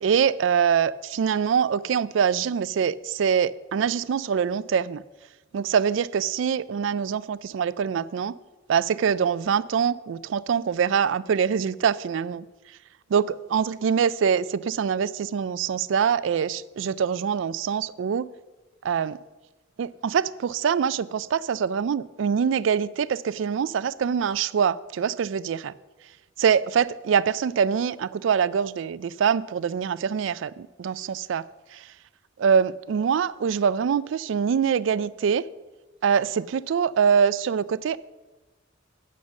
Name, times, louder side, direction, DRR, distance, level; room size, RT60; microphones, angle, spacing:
voice 1, 0.0-5.0 5.5-8.3 8.7-12.5 13.1-13.2 13.5-18.3 18.8-19.2 19.8-25.7 26.4-31.5 31.7-31.9 32.4-35.5 36.0-38.0, right 7 dB, 70° right, 18 dB, 0.3 m, -24 dB
8.7 x 6.5 x 6.4 m, 1.1 s
head